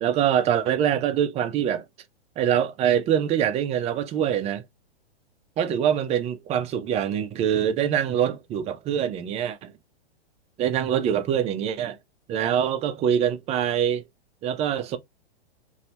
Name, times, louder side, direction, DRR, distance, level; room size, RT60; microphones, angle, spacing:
voice 1, 0.0-1.8 2.4-4.6 5.6-9.7 10.6-12.0 12.3-14.0 14.4-15.0, right 9 dB, 20° right, 0.5 m, -24 dB
2.8 x 2.7 x 3.2 m
hypercardioid pair, 115°, 32 cm